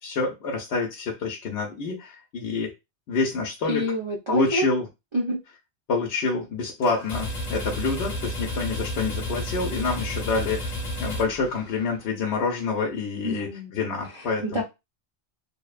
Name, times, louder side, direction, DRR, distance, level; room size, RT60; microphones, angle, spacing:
voice 1, 0.0-2.7 3.1-3.8 4.3-4.8 5.9-10.7 11.0-14.6, left 4 dB, 75° left, -1 dB, 0.9 m, -27 dB
voice 2, 3.7-4.6 5.1-5.4 13.2-13.7 14.1-14.6, equal, 50° right, -2 dB, 0.3 m, -28 dB
sound 1, 6.8-12.0, left 1 dB, 40° left, 0.8 m, -32 dB
2.7 x 2.1 x 2.3 m, 0.24 s
omnidirectional pair, 1.1 m